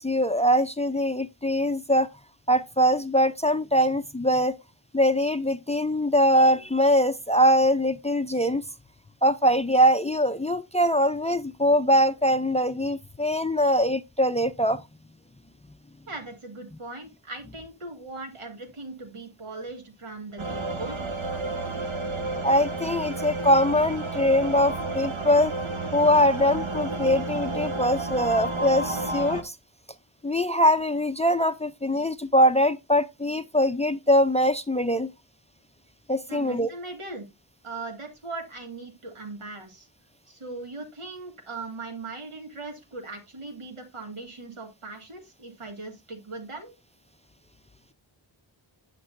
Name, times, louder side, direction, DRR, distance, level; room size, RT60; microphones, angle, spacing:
voice 1, 0.0-2.1 2.5-4.6 4.9-8.6 9.2-14.8 22.4-25.5 25.9-29.5 30.2-35.1 36.1-36.7, equal, 15° left, 0.4 m, -22 dB
voice 2, 16.1-21.0 36.3-37.3 37.6-39.9 40.3-46.7, right 3 dB, 85° right, 2.0 m, -39 dB
sound 1, 20.4-29.4, right 2 dB, 70° right, 1.2 m, -31 dB
9.4 x 5.9 x 2.5 m
cardioid pair, 45°, 49 cm